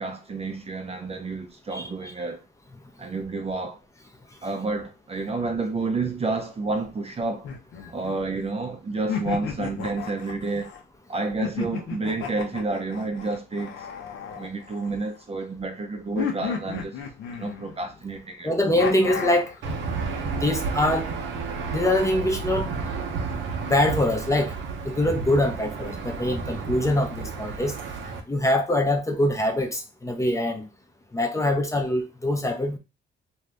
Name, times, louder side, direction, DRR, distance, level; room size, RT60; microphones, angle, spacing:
voice 1, 0.0-2.4 3.0-3.8 4.4-7.5 7.9-10.7 11.1-13.9 14.4-17.0 17.3-18.5 28.1-28.2, right 3 dB, 30° right, 0.6 m, -30 dB
sound 1, 7.4-8.5 9.1-10.8 11.4-15.2 16.2-17.9 18.8-19.6, left 7 dB, 80° left, 0.8 m, -33 dB
voice 2, 18.4-19.5 20.4-21.1 21.7-22.7 23.6-24.5 24.8-27.7 28.3-30.7 31.1-32.8, left 1 dB, 15° left, 0.6 m, -23 dB
Aircraft / Engine, 19.6-28.2, right 4 dB, 75° right, 0.7 m, -31 dB
2.7 x 2.4 x 3.3 m
cardioid pair, 90°, 20 cm